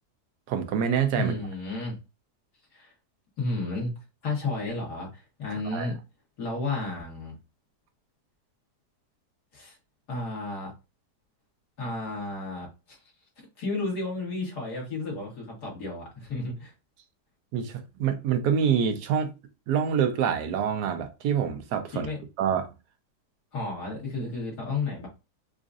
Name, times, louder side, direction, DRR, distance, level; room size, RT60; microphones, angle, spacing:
voice 1, 0.5-1.3 5.7-5.9 17.5-19.3 19.7-22.1 22.4-22.7, right 7 dB, 75° right, 1.2 m, -26 dB
voice 2, 1.2-2.0 2.7-2.9 3.4-3.9 4.2-6.0 6.4-7.4 9.5-9.8 10.1-10.7 11.8-13.0 13.6-16.7 21.9-22.2 23.5-25.1, left 3 dB, 75° left, 2.2 m, -32 dB
4.9 x 2.5 x 2.4 m
omnidirectional pair, 1.8 m